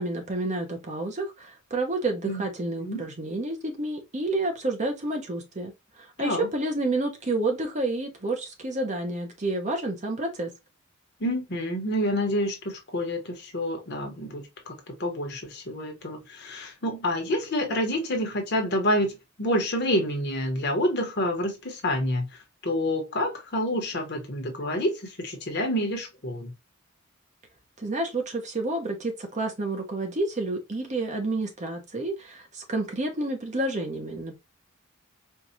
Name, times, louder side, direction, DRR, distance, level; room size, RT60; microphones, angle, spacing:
voice 1, 0.0-5.7 6.0-10.5 27.8-34.4, right 2 dB, 35° right, 0.8 m, -29 dB
voice 2, 11.2-14.7 15.0-22.3 22.6-26.5, left 1 dB, 50° left, 1.1 m, -28 dB
4.6 x 2.4 x 2.7 m
head